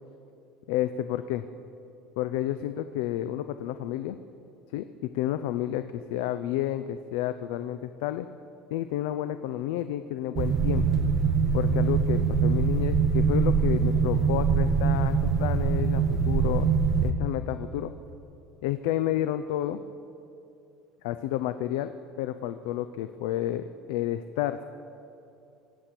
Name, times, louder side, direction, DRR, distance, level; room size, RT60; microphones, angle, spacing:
voice 1, 0.7-1.4 2.2-4.2 4.7-8.3 8.7-10.8 11.5-16.7 17.0-17.9 18.6-19.8 21.0-21.9 22.2-24.6, left 12 dB, 85° left, 11 dB, 0.5 m, -30 dB
sound 1, 10.4-17.1, right 5 dB, 35° right, 0.9 m, -23 dB
24.5 x 8.5 x 6.0 m, 2.7 s
cardioid pair, 155°, 0 cm